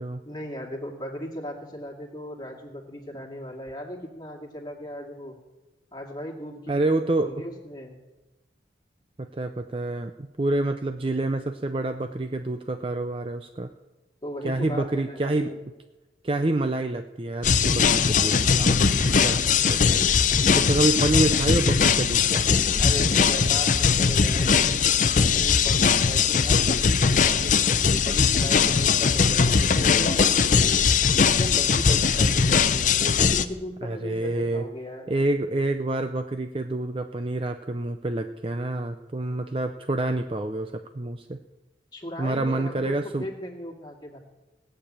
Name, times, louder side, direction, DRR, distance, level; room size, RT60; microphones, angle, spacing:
voice 1, 0.2-5.4 5.9-8.0 14.2-15.6 22.8-30.6 31.0-35.1 41.9-44.2, equal, 25° left, 1 dB, 2.2 m, -37 dB
voice 2, 6.7-7.3 9.2-13.7 14.4-15.5 16.2-22.5 33.8-34.6 35.1-41.4 42.2-43.3, right 2 dB, 30° right, 7 dB, 0.5 m, -27 dB
sound 1, 17.4-33.4, left 6 dB, 45° left, 0.6 m, -20 dB
18.0 x 6.8 x 8.8 m, 1.1 s
head